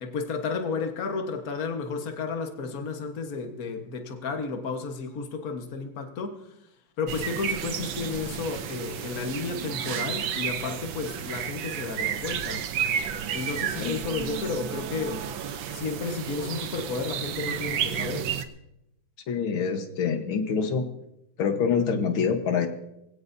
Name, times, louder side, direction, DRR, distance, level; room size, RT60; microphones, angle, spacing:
voice 1, 0.0-6.4 7.0-12.6 13.3-15.3 15.7-18.4, left 4 dB, 50° left, 1.7 m, -32 dB
sound 1, 7.1-18.4, right 8 dB, 75° right, 1.6 m, -32 dB
voice 2, 19.3-20.9 21.4-22.7, left 6 dB, 90° left, 2.1 m, -25 dB
22.5 x 16.5 x 2.7 m
omnidirectional pair, 2.1 m